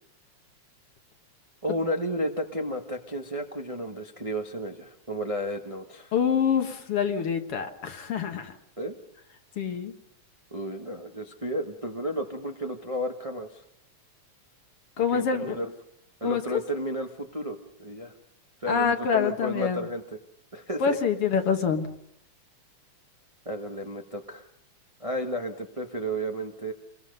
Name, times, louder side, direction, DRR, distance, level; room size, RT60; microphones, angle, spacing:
voice 1, 1.6-6.1 8.8-8.9 10.5-13.6 15.0-15.7 16.2-18.1 18.6-20.0 20.5-21.0 23.4-24.4 25.0-26.7, equal, 40° right, 3 dB, 0.4 m, -32 dB
voice 2, 6.1-8.5 9.6-9.9 15.0-15.6 16.2-16.6 18.7-19.9 20.8-21.9, left 7 dB, 55° left, 7 dB, 2.1 m, -26 dB
28.0 x 22.0 x 5.4 m, 0.71 s
omnidirectional pair, 3.4 m